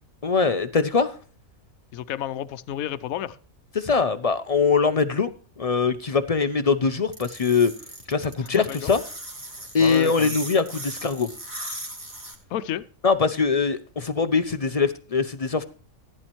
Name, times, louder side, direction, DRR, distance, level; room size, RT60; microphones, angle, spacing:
voice 1, 0.2-1.1 3.8-5.3 5.6-7.7 8.1-9.0 9.7-11.3 13.0-15.6, left 5 dB, 50° left, 11 dB, 0.4 m, -22 dB
voice 2, 1.9-3.4 8.4-8.9 9.8-10.3 12.5-12.8, left 11 dB, 75° left, 13 dB, 1.1 m, -31 dB
sound 1, 7.1-12.3, right 1 dB, 20° right, 2.7 m, -37 dB
15.5 x 9.8 x 3.0 m, 0.41 s
omnidirectional pair, 1.5 m